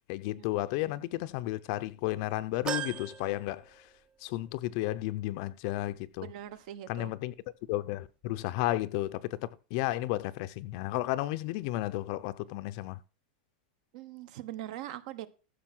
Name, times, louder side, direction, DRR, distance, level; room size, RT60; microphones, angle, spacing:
voice 1, 0.1-3.9 4.2-6.3 6.9-7.3 7.7-13.0, left 16 dB, 45° left, 0.6 m, -33 dB
sound 1, 2.7-4.3 4.7-4.8 6.0-6.1, right 7 dB, 20° right, 0.6 m, -38 dB
voice 2, 6.2-7.1 13.9-15.3, right 12 dB, 55° right, 1.1 m, -42 dB
13.5 x 6.4 x 6.1 m
supercardioid pair, 160°, 5 cm